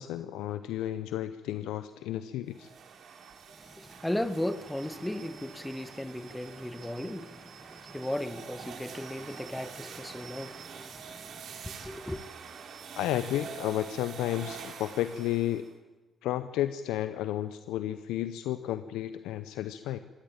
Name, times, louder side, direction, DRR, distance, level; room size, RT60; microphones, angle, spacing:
voice 1, 0.0-2.7 13.0-15.7 16.2-20.0, left 13 dB, 80° left, 0.7 m, -32 dB
sound 1, 2.5-15.7, right 6 dB, 65° right, 2.7 m, -46 dB
voice 2, 3.6-11.3 11.6-12.2, left 1 dB, 10° left, 1.6 m, -36 dB
23.5 x 16.5 x 8.9 m
hypercardioid pair, 50°, 0 cm